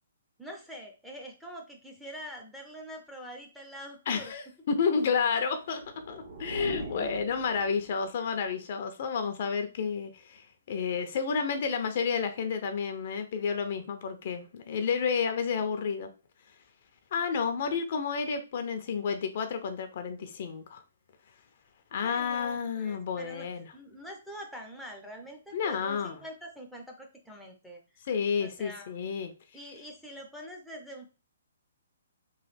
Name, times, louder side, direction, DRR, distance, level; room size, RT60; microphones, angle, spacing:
voice 1, 0.4-4.3 7.0-7.1 22.0-27.8 28.4-28.9 29.5-31.1, equal, ahead, 0 dB, 0.6 m, -45 dB
voice 2, 4.1-5.8 6.1-16.1 17.1-20.8 21.9-23.7 25.5-26.2 28.1-29.3, left 6 dB, 50° left, 8 dB, 0.5 m, -30 dB
sound 1, 5.5-8.2, right 2 dB, 55° right, 1.4 m, -42 dB
3.1 x 2.2 x 3.2 m, 0.32 s
hypercardioid pair, 150°, 0 cm